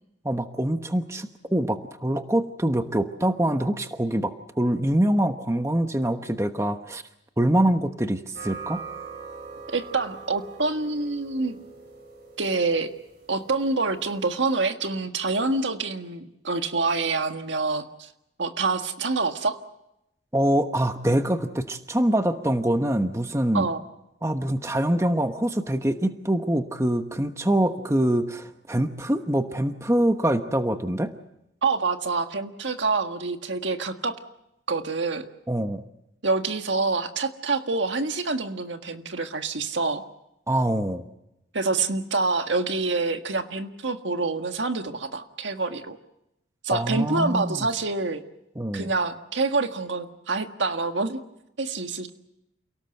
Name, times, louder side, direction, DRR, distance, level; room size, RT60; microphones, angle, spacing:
voice 1, 0.2-7.0 7.4-8.8 20.3-23.7 24.2-31.1 35.5-35.8 40.5-41.1 46.7-47.7 48.6-48.9, right 1 dB, 15° right, 8 dB, 1.1 m, -24 dB
sound 1, 8.4-14.3, right 5 dB, 60° right, 4.8 m, -42 dB
voice 2, 9.7-11.6 12.4-12.9 13.3-18.1 18.4-19.6 23.5-23.8 31.6-34.2 34.7-35.2 36.2-40.0 41.5-46.0 46.6-48.2 48.7-51.2 51.6-52.1, right 3 dB, 85° right, 7 dB, 1.7 m, -26 dB
29.0 x 18.0 x 7.9 m, 0.86 s
head